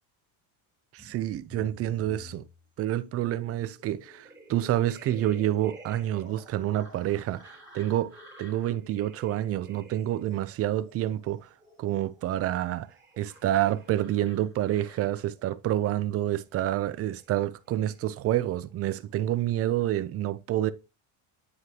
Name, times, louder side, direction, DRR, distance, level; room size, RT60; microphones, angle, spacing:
voice 1, 0.9-2.4 2.8-11.5 11.8-12.9 13.2-20.7, right 13 dB, 35° right, 0.4 m, -28 dB
sound 1, 1.0-18.7 19.0-19.9, equal, 5° right, 3.4 m, -52 dB
9.7 x 4.8 x 2.8 m
cardioid pair, 145°, 47 cm